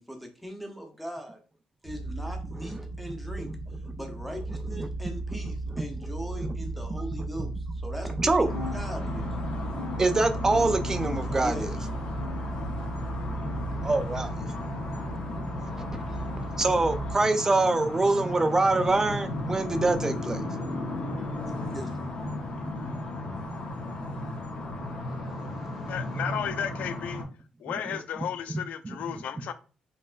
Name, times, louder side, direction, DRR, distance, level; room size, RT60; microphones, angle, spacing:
voice 1, 0.0-1.4 1.8-3.5 4.0-8.1 8.4-9.3 11.3-11.9 21.4-21.9, equal, ahead, 0.8 m, -40 dB
sound 1, 1.8-17.1, right 2 dB, 60° right, 1.6 m, -36 dB
voice 2, 8.2-8.5 10.0-11.7 13.8-14.3 15.8-16.0 16.6-20.4 24.9-25.0, right 2 dB, 20° right, 0.4 m, -24 dB
sound 2, 8.4-27.2, left 2 dB, 60° left, 0.8 m, -35 dB
sound 3, 8.5-9.4 9.7-10.5 11.0-11.6 12.2-12.8 13.4-13.8 14.6-14.9 15.8-16.1 17.1-17.3 18.3-18.5 19.5-19.7 20.7-20.9 21.9-22.0 23.2-23.3, left 5 dB, 90° right, 1.5 m, -44 dB
voice 3, 25.9-27.2 27.6-29.5, left 8 dB, 75° left, 0.4 m, -33 dB
4.3 x 2.0 x 2.5 m
cardioid pair, 100°, 3 cm